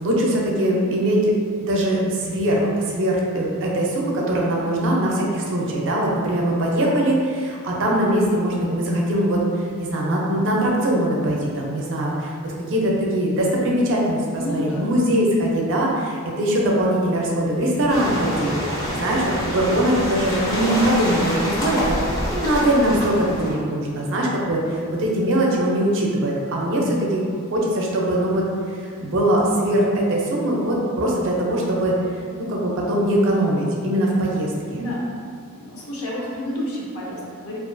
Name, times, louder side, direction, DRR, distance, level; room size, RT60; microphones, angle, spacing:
voice 1, 0.0-1.3 1.6-9.4 9.8-23.1 23.4-27.2 27.5-28.4 28.8-32.0 32.4-34.8, right 1 dB, 60° right, -2 dB, 0.4 m, -21 dB
voice 2, 4.6-5.3 14.4-14.9 22.8-23.5 34.7-35.1 35.5-37.7, left 1 dB, 75° left, -4 dB, 0.6 m, -30 dB
sound 1, 17.9-23.6, equal, 15° left, 0.4 m, -26 dB
2.4 x 2.2 x 2.5 m, 2.2 s
head